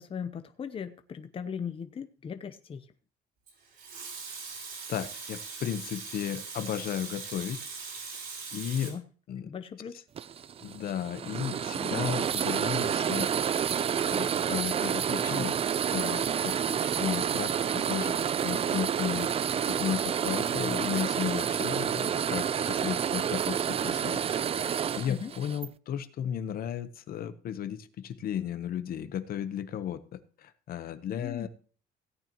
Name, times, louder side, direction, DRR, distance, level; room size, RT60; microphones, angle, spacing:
voice 1, 0.0-2.9 8.8-9.0 9.4-9.9 25.1-25.3 31.2-31.5, left 7 dB, 35° left, 9 dB, 0.8 m, -38 dB
Water tap faucet / Sink (filling or washing) / Liquid, 3.5-8.9, right 4 dB, 65° right, 5.6 m, -41 dB
voice 2, 4.9-7.6 8.5-8.9 9.3-9.5 10.6-13.3 14.1-15.6 15.9-19.3 19.7-24.2 24.6-31.5, left 9 dB, 60° left, 12 dB, 1.0 m, -34 dB
sound 1, 10.2-25.7, right 8 dB, 35° right, 0.5 m, -29 dB
17.0 x 9.1 x 3.0 m, 0.42 s
cardioid pair, 110°, 17 cm